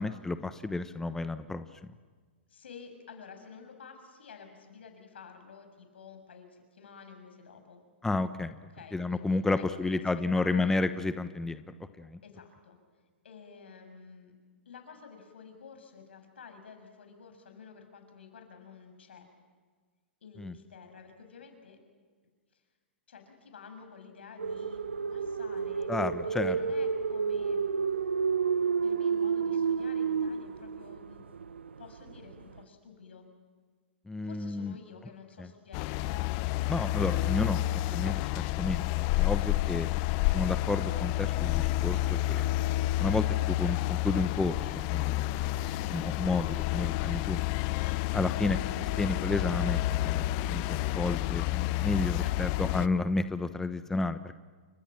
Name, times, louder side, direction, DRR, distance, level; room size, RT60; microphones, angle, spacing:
voice 1, 0.0-1.6 8.0-8.5 8.9-11.6 12.0-12.2 20.4-20.5 25.9-26.6 34.1-34.7 35.4-35.5 36.7-39.9 40.3-42.4 43.0-45.3 45.9-47.4 48.1-54.4, left 3 dB, 5° left, 11 dB, 1.1 m, -31 dB
voice 2, 2.5-7.8 8.7-10.0 10.3-10.8 12.2-12.8 13.2-14.3 14.6-19.3 20.2-21.8 23.1-24.8 25.1-25.9 26.2-27.6 28.8-31.2 31.8-33.3 34.2-36.5 47.8-48.2 52.1-52.6, left 5 dB, 70° left, 6 dB, 6.7 m, -51 dB
sound 1, 24.4-32.6, right 6 dB, 80° right, 1.1 m, -31 dB
sound 2, 35.7-52.9, left 16 dB, 45° left, 0.9 m, -30 dB
29.5 x 26.5 x 7.5 m, 1.5 s
hypercardioid pair, 110°, 6 cm